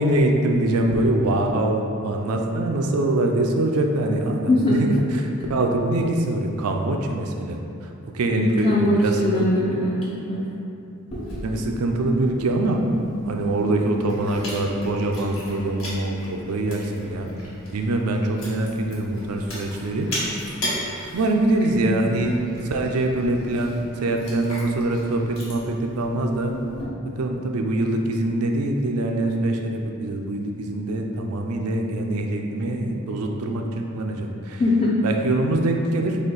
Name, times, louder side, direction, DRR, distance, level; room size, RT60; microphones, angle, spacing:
voice 1, 0.0-9.5 11.4-12.8 13.2-17.3 17.7-20.1 21.1-22.4 22.6-26.5 27.2-34.6 35.0-36.2, right 1 dB, 90° right, 3 dB, 0.5 m, -24 dB
voice 2, 4.5-4.8 5.4-5.5 8.3-10.5 34.6-35.0, left 1 dB, 25° left, -6 dB, 0.4 m, -21 dB
Chewing mastication, 11.1-26.8, left 1 dB, 65° left, 1.4 m, -37 dB
4.2 x 2.8 x 3.9 m, 2.6 s
head